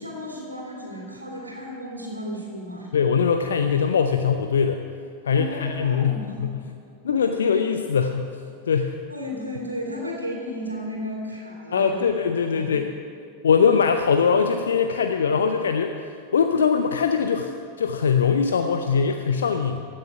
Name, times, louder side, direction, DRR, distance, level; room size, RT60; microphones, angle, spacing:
voice 1, 0.0-2.9 5.3-6.4 9.1-12.1 12.4-12.7, equal, 85° right, -2 dB, 2.4 m, -34 dB
voice 2, 2.9-4.8 5.2-6.5 7.0-8.3 8.7-9.0 11.7-12.9 13.4-15.9 16.3-17.5 17.8-19.8, left 6 dB, 65° left, 6 dB, 0.6 m, -21 dB
15.5 x 6.6 x 9.3 m, 2.4 s
figure-of-eight pair, 90°, 0 cm